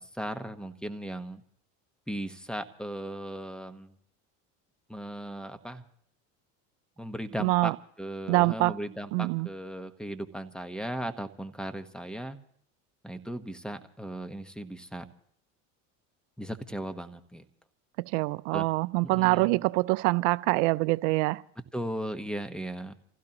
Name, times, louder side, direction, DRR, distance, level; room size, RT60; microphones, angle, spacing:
voice 1, 0.0-1.4 2.1-3.9 4.9-5.8 7.0-7.7 8.0-12.4 13.0-15.0 16.4-17.4 18.5-18.7 19.0-19.5 21.7-22.9, right 1 dB, ahead, 1.1 m, -37 dB
voice 2, 7.4-7.8 8.3-8.7 9.1-9.5 18.0-21.4, right 23 dB, 75° right, 0.5 m, -25 dB
28.5 x 16.0 x 3.0 m
supercardioid pair, 90°, 38 cm